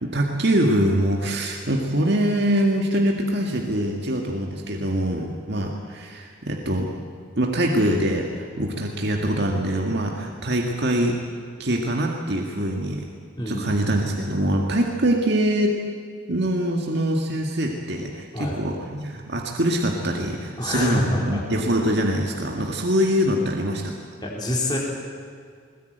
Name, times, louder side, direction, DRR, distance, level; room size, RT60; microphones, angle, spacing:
voice 1, 0.0-6.9 7.4-11.2 11.6-13.1 13.5-15.8 16.3-23.9, right 1 dB, 55° right, 1 dB, 2.0 m, -23 dB
voice 2, 13.4-13.8 18.3-18.6 20.6-21.4 22.5-22.8 24.2-24.8, left 1 dB, 20° left, -3 dB, 4.4 m, -27 dB
20.5 x 20.5 x 9.2 m, 2.1 s
head